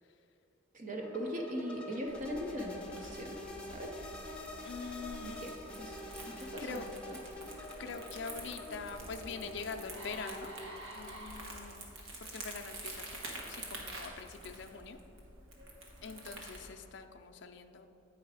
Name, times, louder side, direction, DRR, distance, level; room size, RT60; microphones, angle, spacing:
voice 1, 0.7-3.4 3.7-4.0 5.2-5.5 5.8-6.0 6.3-7.2, equal, 40° right, 2 dB, 0.6 m, -40 dB
sound 1, 1.0-10.7, left 1 dB, 5° left, 0.7 m, -47 dB
Crumpling crinkling, 2.1-16.7, right 2 dB, 80° right, 1.2 m, -48 dB
voice 2, 4.6-5.5 6.3-6.9 7.8-10.5 10.9-11.9 12.3-15.0 16.0-17.9, left 5 dB, 60° left, 5 dB, 0.4 m, -44 dB
sound 2, 9.1-9.2 9.7-12.0 12.7-12.9, right 1 dB, 60° right, 1.5 m, -49 dB
8.6 x 4.7 x 4.8 m, 2.9 s
head